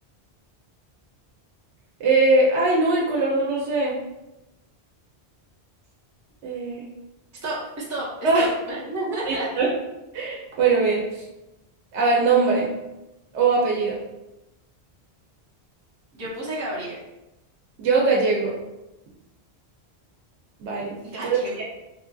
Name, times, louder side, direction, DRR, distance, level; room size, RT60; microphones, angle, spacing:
voice 1, 2.0-3.9 6.4-6.8 8.2-8.5 9.3-9.7 10.1-11.2 11.9-12.7 13.3-14.0 17.8-18.6 20.6-21.0 21.2-21.6, right 3 dB, 90° right, -3 dB, 0.9 m, -21 dB
voice 2, 7.4-9.5 16.1-17.0 21.0-21.6, right 1 dB, 20° right, -7 dB, 0.5 m, -31 dB
2.9 x 2.5 x 2.2 m, 0.96 s
omnidirectional pair, 1.1 m